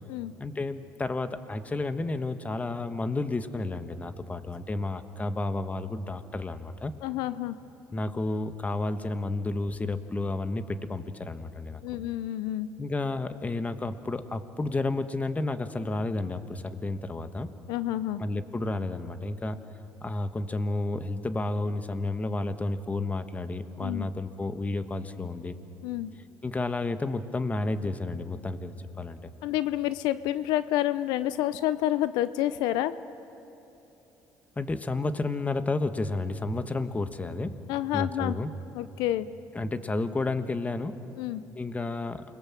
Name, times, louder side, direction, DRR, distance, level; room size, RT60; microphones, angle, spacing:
voice 1, 0.4-6.9 7.9-11.8 12.8-17.5 18.2-19.6 20.0-25.6 26.4-29.3 34.6-37.6 37.9-38.5 39.5-41.0 41.6-42.2, left 2 dB, 20° left, 10 dB, 1.3 m, -31 dB
voice 2, 7.0-7.6 11.8-12.7 17.7-18.2 23.8-24.1 25.8-26.1 29.4-33.0 37.7-38.4 38.7-39.3 41.2-41.4, left 14 dB, 85° left, 14 dB, 0.6 m, -29 dB
28.0 x 21.5 x 7.6 m, 3.0 s
supercardioid pair, 90°, 7 cm